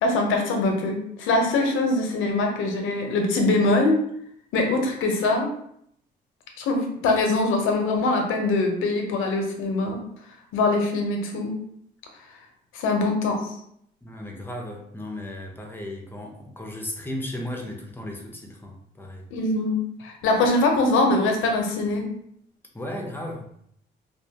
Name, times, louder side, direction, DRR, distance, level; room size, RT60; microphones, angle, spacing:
voice 1, 0.0-4.0 4.5-5.5 6.6-10.0 10.5-11.5 12.7-13.5 19.3-22.1, left 2 dB, 85° left, 3 dB, 0.6 m, -23 dB
voice 2, 14.0-19.2 22.7-23.5, left 1 dB, 10° left, 0 dB, 0.6 m, -35 dB
2.4 x 2.1 x 2.8 m, 0.70 s
cardioid pair, 90°, 20 cm